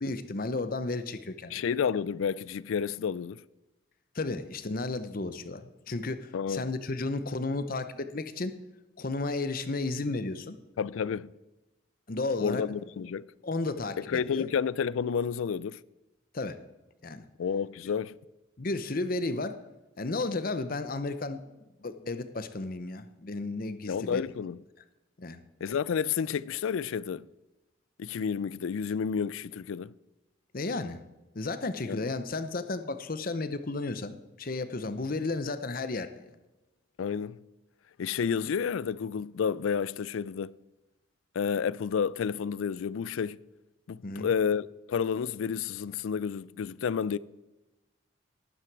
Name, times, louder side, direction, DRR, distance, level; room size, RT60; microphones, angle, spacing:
voice 1, 0.0-1.6 4.1-8.5 9.0-10.6 12.1-12.6 13.4-14.5 16.3-16.6 17.0-17.3 18.6-19.6 20.0-24.2 25.2-25.4 30.5-31.0 31.3-36.3 44.0-44.3, left 3 dB, 45° left, 0.7 m, -33 dB
voice 2, 1.5-3.4 6.3-6.6 10.8-11.3 12.4-13.3 14.1-15.8 17.4-18.2 23.9-24.6 25.6-27.3 28.0-29.9 31.8-32.0 37.0-37.4 38.0-40.5 41.4-43.4 43.9-47.2, left 6 dB, 80° left, 0.4 m, -30 dB
12.0 x 11.0 x 4.7 m
head